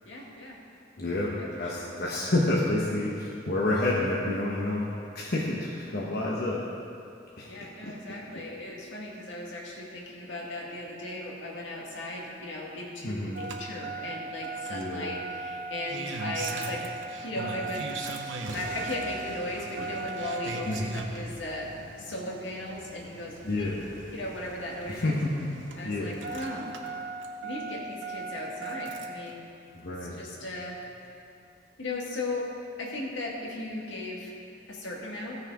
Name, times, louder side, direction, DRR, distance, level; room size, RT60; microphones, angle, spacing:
voice 1, 0.1-0.6 1.4-1.5 1.7-1.9 7.5-16.8 17.2-17.9 18.5-21.7 22.0-25.2 25.8-26.7 27.4-29.5 30.1-30.8 31.8-32.5 32.8-34.4 34.7-35.4, left 1 dB, 75° left, -2 dB, 1.9 m, -37 dB
voice 2, 1.0-4.9 5.1-6.7 7.4-7.9 8.3-8.4 13.0-13.4 14.7-15.1 20.7-21.0 23.4-23.9 24.9-25.5 25.8-26.2 29.8-30.2, left 2 dB, 55° left, -4 dB, 1.1 m, -29 dB
Engine starting, 13.3-29.3 30.5-30.6, right 3 dB, 80° right, 0.9 m, -38 dB
15.0 x 6.5 x 4.8 m, 2.6 s
head